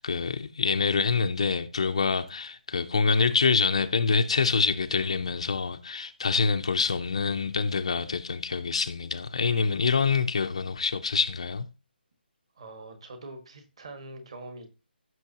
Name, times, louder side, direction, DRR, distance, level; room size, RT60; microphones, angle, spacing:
voice 1, 0.0-11.7, left 5 dB, 30° left, 0.4 m, -26 dB
voice 2, 12.5-14.7, right 2 dB, 30° right, 1.6 m, -43 dB
15.0 x 6.2 x 2.8 m
hypercardioid pair, 180°, 6 cm